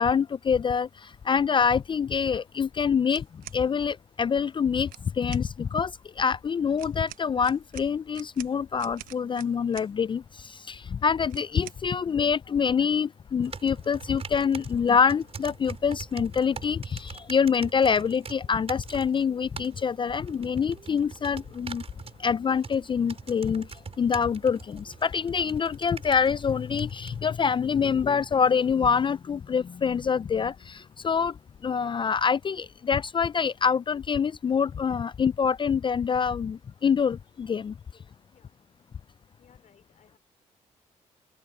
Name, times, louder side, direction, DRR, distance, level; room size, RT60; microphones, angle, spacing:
voice 1, 0.0-3.3 3.5-21.8 22.2-23.7 24.0-31.4 31.6-37.7, left 6 dB, 35° left, 0.4 m, -26 dB
sound 1, 3.1-3.6 4.8-5.5 6.8-9.9 11.3-11.8, right 15 dB, 85° right, 0.9 m, -46 dB
sound 2, 13.4-27.2, right 5 dB, 45° right, 4.5 m, -44 dB
voice 2, 38.3-38.6 39.4-40.2, left 8 dB, 60° left, 5.0 m, -61 dB
supercardioid pair, 55°, 14 cm